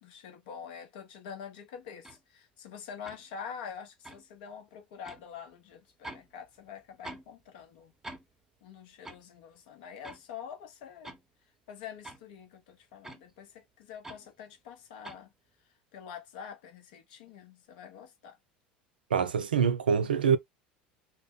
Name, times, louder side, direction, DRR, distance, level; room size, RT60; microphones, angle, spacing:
voice 1, 0.0-7.9 8.6-11.1 11.7-15.3 15.9-18.3, left 7 dB, 70° left, 0.8 m, -46 dB
sound 1, 2.0-2.2 3.0-3.2 4.0-4.3 5.0-5.3 6.0-6.3 6.6-7.3 7.6-7.7 8.0-8.3 9.0-9.2 10.0-10.2 10.8-11.2 12.0-12.2 13.0-13.2 14.0-14.3 15.0-15.2, right 2 dB, 10° right, 0.7 m, -45 dB
voice 2, 19.1-20.4, right 7 dB, 90° right, 0.4 m, -25 dB
2.1 x 2.1 x 3.5 m
hypercardioid pair, 80°, 5 cm